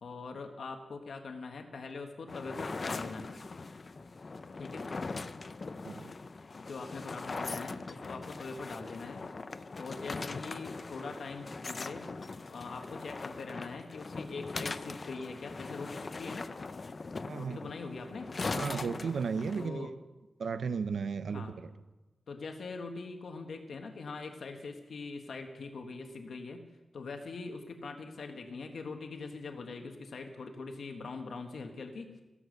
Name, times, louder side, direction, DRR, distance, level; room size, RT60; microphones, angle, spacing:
voice 1, 0.0-3.3 4.6-4.8 6.5-9.2 9.7-12.1 12.5-16.5 17.4-18.3 19.6-19.9 21.3-21.6 22.3-26.6 26.9-32.2, left 4 dB, 65° left, 4 dB, 1.3 m, -42 dB
sound 1, 2.3-19.7, left 3 dB, 35° left, 0.5 m, -41 dB
voice 2, 17.3-17.7 18.5-19.9 20.4-21.7, right 5 dB, 70° right, 11 dB, 0.6 m, -34 dB
15.0 x 11.5 x 6.6 m, 1.1 s
wide cardioid pair, 160°, 0 cm